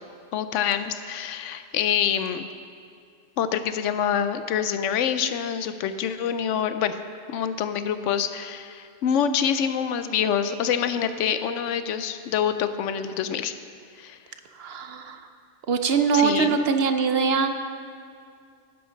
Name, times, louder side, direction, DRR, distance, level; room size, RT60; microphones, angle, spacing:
voice 1, 0.3-2.5 3.4-7.0 7.3-13.5 14.0-14.2 16.1-16.6, left 8 dB, 85° left, 11 dB, 0.9 m, -26 dB
voice 2, 14.6-15.2 15.7-17.5, right 5 dB, 60° right, 7 dB, 0.8 m, -22 dB
12.0 x 10.0 x 3.9 m, 2.3 s
omnidirectional pair, 1.2 m